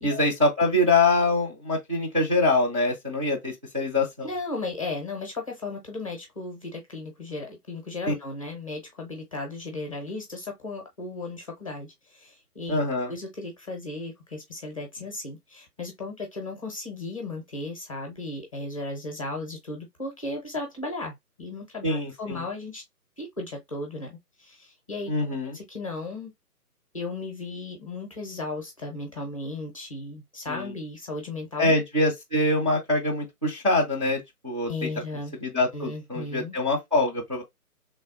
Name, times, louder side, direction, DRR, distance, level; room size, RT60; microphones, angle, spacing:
voice 1, 0.0-4.3 8.1-8.2 12.7-13.1 21.8-22.4 25.1-25.5 30.5-30.7 31.6-34.9 35.4-37.4, left 2 dB, 20° right, 0.5 m, -24 dB
voice 2, 4.2-12.8 13.1-22.8 23.2-25.1 25.5-26.3 26.9-31.8 34.7-35.3 35.7-36.5, left 2 dB, 20° left, 0.6 m, -35 dB
3.2 x 2.2 x 3.9 m
figure-of-eight pair, 140°, 46 cm